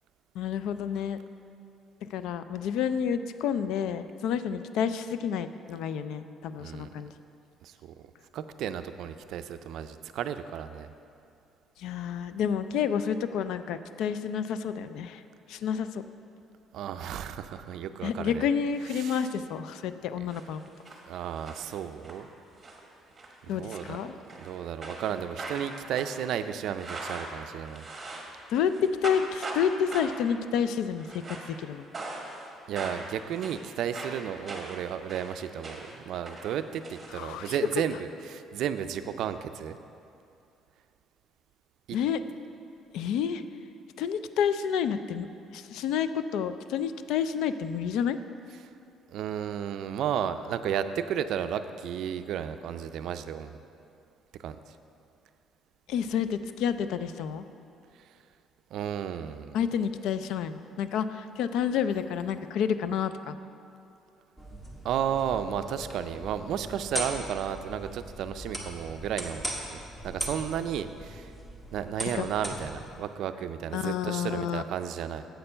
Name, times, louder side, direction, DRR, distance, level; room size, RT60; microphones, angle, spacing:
voice 1, 0.4-1.2 2.1-7.1 11.8-15.2 15.5-16.0 18.0-20.6 23.5-24.1 28.5-28.7 29.0-31.9 37.1-37.5 41.9-42.2 42.9-43.4 44.0-45.3 45.5-48.2 55.9-57.4 59.5-63.4 72.1-72.3 73.7-74.6, left 8 dB, 75° left, 12 dB, 0.4 m, -29 dB
voice 2, 6.6-6.9 7.6-8.1 8.3-10.9 16.7-18.5 18.9-19.2 21.0-22.3 23.5-27.9 32.7-39.8 41.9-42.0 49.1-53.6 54.4-54.6 58.7-59.6 64.8-69.4 69.7-69.8 70.0-71.3 71.7-75.3, right 9 dB, 60° right, 10 dB, 0.4 m, -33 dB
sound 1, 20.3-21.0 21.3-22.2 22.6-22.8 23.2-23.3 23.7-24.5 24.8-28.4 28.7-29.6 29.9-30.3 30.9-31.6 31.9-32.5 32.7-36.0 36.2-37.7, right 2 dB, 20° right, 1.1 m, -40 dB
sound 2, 64.4-72.9, right 1 dB, 10° left, 1.0 m, -39 dB
7.8 x 6.7 x 5.5 m, 2.6 s
cardioid pair, 160°, 0 cm